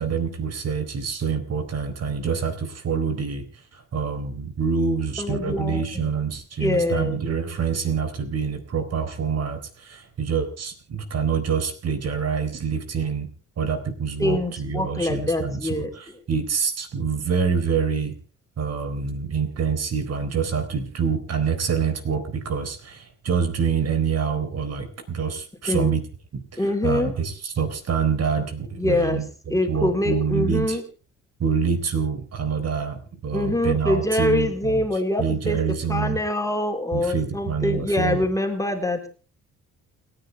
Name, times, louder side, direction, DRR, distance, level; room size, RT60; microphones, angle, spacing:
voice 1, 0.0-13.3 13.6-18.2 18.6-26.0 26.3-30.8 31.4-36.2 36.9-38.2, right 6 dB, 55° right, 8 dB, 3.9 m, -26 dB
voice 2, 5.2-6.1 6.6-7.2 14.2-15.9 25.7-26.0 26.6-27.1 28.8-29.2 29.5-30.8 33.3-39.1, left 1 dB, 10° left, 4 dB, 3.7 m, -24 dB
29.5 x 10.0 x 3.4 m, 0.36 s
cardioid pair, 90°, 30 cm